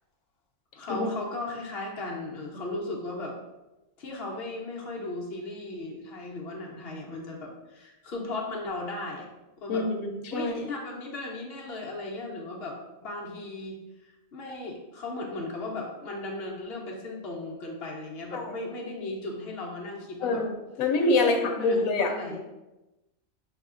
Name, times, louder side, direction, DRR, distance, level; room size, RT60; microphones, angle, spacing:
voice 1, 0.7-3.3 4.0-9.3 9.6-9.9 10.3-12.8 13.0-13.8 14.0-20.4 21.2-22.4, left 2 dB, 55° left, -1 dB, 0.9 m, -36 dB
voice 2, 9.7-10.5 18.3-18.5 20.2-20.5 20.8-22.4, left 3 dB, 90° left, 4 dB, 1.0 m, -26 dB
5.5 x 2.8 x 2.4 m, 1.0 s
omnidirectional pair, 1.4 m